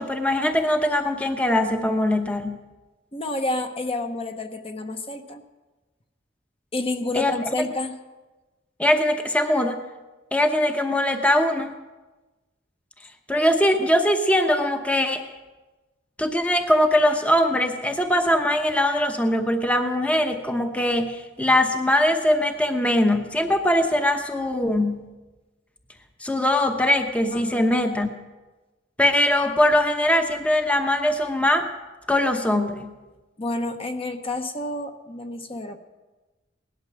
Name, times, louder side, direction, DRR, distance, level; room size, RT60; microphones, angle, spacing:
voice 1, 0.0-2.6 7.1-7.3 8.8-9.8 10.3-11.7 13.3-15.2 16.2-25.1 26.2-28.1 29.0-31.7 32.1-32.9, left 1 dB, 5° left, 5 dB, 0.9 m, -21 dB
voice 2, 3.1-5.4 6.7-8.0 27.3-27.7 33.4-35.8, left 2 dB, 30° left, 6 dB, 1.0 m, -29 dB
18.0 x 12.0 x 6.3 m, 1.2 s
head